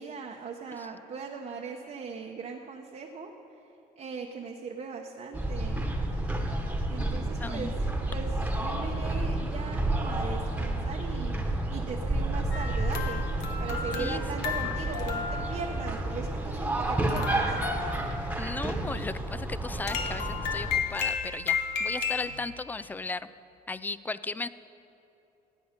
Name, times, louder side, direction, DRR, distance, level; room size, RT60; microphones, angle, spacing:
voice 1, 0.0-3.3 4.0-5.9 6.9-7.7 8.1-13.2 13.6-17.6, right 5 dB, 45° right, 1 dB, 0.9 m, -39 dB
sound 1, 5.3-20.8, right 1 dB, 10° right, 1.3 m, -31 dB
voice 2, 7.4-7.7 14.0-14.2 18.4-23.3 23.7-24.5, left 3 dB, 10° left, 15 dB, 0.3 m, -36 dB
sound 2, 12.5-22.4, left 6 dB, 85° left, 1.3 m, -34 dB
16.5 x 9.3 x 5.1 m, 2.9 s
cardioid pair, 110°, 17 cm